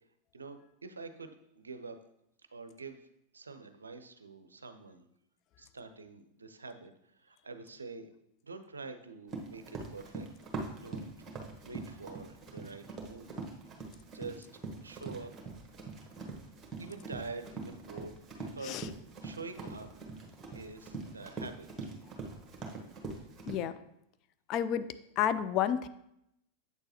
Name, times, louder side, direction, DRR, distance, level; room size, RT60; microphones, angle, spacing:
voice 1, 0.3-2.0 2.5-3.0 3.3-5.1 5.6-8.1 8.4-10.3 10.7-13.3 14.1-15.3 16.8-18.8 19.2-19.9 20.5-21.9, right 4 dB, 75° right, 10 dB, 0.5 m, -46 dB
Run, 9.3-23.5, right 3 dB, 20° right, 1.3 m, -43 dB
voice 2, 23.5-23.8 24.5-24.9 25.2-25.9, left 9 dB, 40° left, 12 dB, 0.4 m, -30 dB
8.1 x 6.7 x 2.8 m, 0.80 s
figure-of-eight pair, 90°, 0 cm